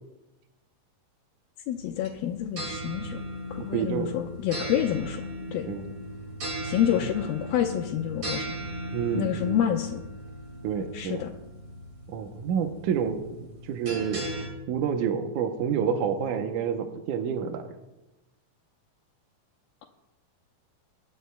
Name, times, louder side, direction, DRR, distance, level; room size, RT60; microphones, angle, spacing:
voice 1, 1.7-3.2 3.5-5.7 6.6-8.6 9.1-10.0 10.9-11.3, left 10 dB, 85° left, -1 dB, 2.7 m, -28 dB
sound 1, 1.8-14.5, equal, 40° right, 2.5 m, -37 dB
voice 2, 3.6-4.1 5.7-5.9 8.9-9.6 10.6-11.2 12.1-14.3 14.7-17.7, right 7 dB, 70° right, 4 dB, 2.1 m, -29 dB
25.5 x 11.5 x 2.3 m, 0.98 s
omnidirectional pair, 4.2 m